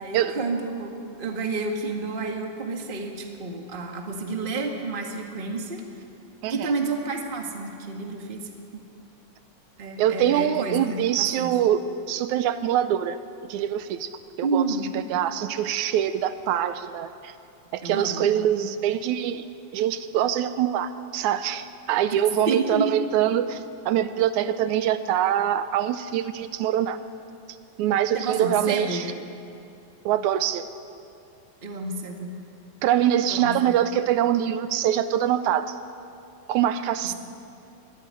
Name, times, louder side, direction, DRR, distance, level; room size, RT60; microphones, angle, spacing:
voice 1, 0.0-5.8 6.5-8.8 9.8-11.5 14.4-14.9 17.8-18.3 22.5-22.9 28.1-29.0 31.6-32.3 33.3-33.8, right 3 dB, 25° right, 2 dB, 1.4 m, -30 dB
voice 2, 10.0-11.8 12.1-13.2 13.4-14.7 14.9-17.3 17.7-19.5 19.7-27.0 27.8-29.2 30.1-30.7 32.8-35.8 36.5-37.1, right 10 dB, 85° right, 12 dB, 2.1 m, -24 dB
22.0 x 12.5 x 9.6 m, 2.6 s
omnidirectional pair, 3.4 m